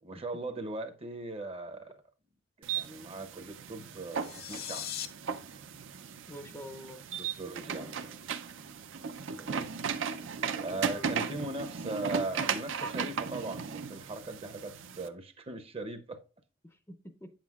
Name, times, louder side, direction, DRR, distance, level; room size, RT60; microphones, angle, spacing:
voice 1, 0.0-2.0 2.6-4.9 7.2-8.0 9.4-9.7 10.6-16.2, right 2 dB, 30° right, 0.7 m, -39 dB
sound 1, 2.6-15.1, right 6 dB, 70° right, 0.6 m, -36 dB
sound 2, 4.0-5.1, left 10 dB, 55° left, 0.6 m, -39 dB
voice 2, 6.3-7.0 7.7-8.1 10.5-11.1 16.6-17.3, equal, 15° left, 0.5 m, -47 dB
8.5 x 7.5 x 2.4 m
head